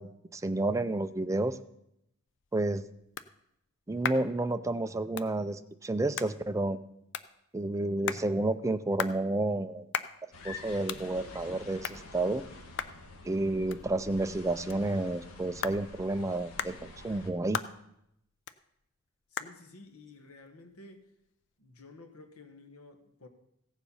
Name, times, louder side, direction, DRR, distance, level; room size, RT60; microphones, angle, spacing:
voice 1, 0.0-1.6 2.5-2.8 3.9-6.8 7.5-9.9 10.4-12.4 13.2-17.6, right 2 dB, 15° right, 10 dB, 0.4 m, -30 dB
sound 1, 2.3-21.6, left 8 dB, 55° left, 0.5 m, -42 dB
sound 2, 10.3-17.3, left 2 dB, 90° left, 1.5 m, -47 dB
voice 2, 19.3-21.1 21.6-23.3, left 3 dB, 75° left, 7 dB, 1.3 m, -52 dB
15.5 x 7.2 x 5.5 m, 0.79 s
head